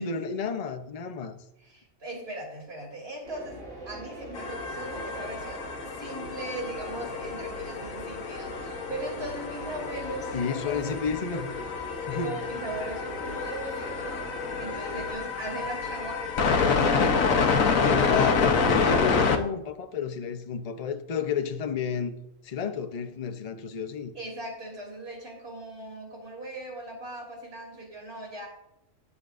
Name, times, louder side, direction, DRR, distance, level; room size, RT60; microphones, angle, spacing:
voice 1, 0.0-1.4 10.3-11.5 12.1-12.4 17.9-22.2 22.4-24.1, left 6 dB, 40° left, 0.6 m, -31 dB
voice 2, 1.6-11.0 12.2-14.2 14.6-17.3 24.1-28.5, right 2 dB, 50° right, 3.2 m, -39 dB
sound 1, 3.2-15.1, right 1 dB, 80° right, 4.4 m, -42 dB
sound 2, 4.3-19.4, left 5 dB, 85° left, 1.3 m, -28 dB
18.5 x 7.1 x 2.5 m
omnidirectional pair, 1.4 m